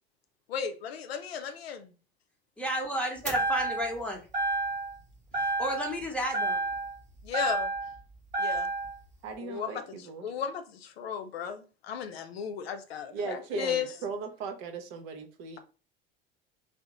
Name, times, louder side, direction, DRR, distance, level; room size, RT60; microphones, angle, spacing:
voice 1, 0.5-1.9 7.2-7.7 8.4-8.7 9.4-9.8 10.2-13.9, left 7 dB, 75° left, 0.5 m, -35 dB
voice 2, 2.6-4.2 5.4-6.6, equal, 5° left, 0.9 m, -32 dB
sound 1, 3.2-4.0 4.3-5.0 5.3-6.0 6.3-8.0 8.3-9.0, right 2 dB, 25° right, 1.0 m, -30 dB
voice 3, 9.2-10.3 13.1-15.6, right 5 dB, 55° right, 0.7 m, -38 dB
2.8 x 2.0 x 3.5 m
figure-of-eight pair, 70°, 31 cm